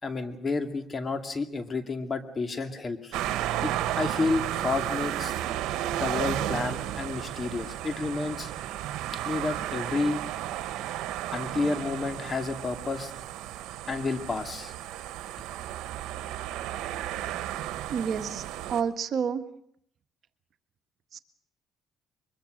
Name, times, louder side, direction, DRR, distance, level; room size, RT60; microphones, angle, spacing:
voice 1, 0.0-3.1 3.6-5.4 5.9-8.5 9.2-10.2 11.3-13.1 13.9-14.7, left 3 dB, 35° left, 7 dB, 2.4 m, -30 dB
sound 1, 3.1-18.8, right 12 dB, 85° right, 1.3 m, -33 dB
voice 2, 17.9-19.4 21.1-21.2, right 7 dB, 60° right, 8 dB, 1.5 m, -30 dB
23.5 x 22.0 x 6.6 m, 0.69 s
cardioid pair, 90°, 0 cm